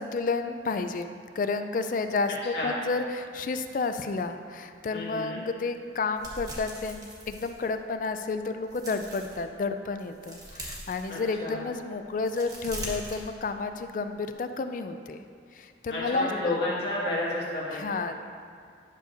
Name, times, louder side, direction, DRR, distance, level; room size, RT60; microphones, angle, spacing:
voice 1, 0.0-15.2 15.5-16.6 17.7-18.4, left 4 dB, 45° left, 8 dB, 0.3 m, -31 dB
voice 2, 4.9-5.4 11.1-11.5 15.9-17.8, left 1 dB, 70° left, -7 dB, 1.9 m, -31 dB
sound 1, 6.2-8.1 8.5-9.4 9.9-11.6 12.1-13.8 14.1-14.3, right 1 dB, 20° right, 1.1 m, -41 dB
10.5 x 6.5 x 2.6 m, 2.2 s
head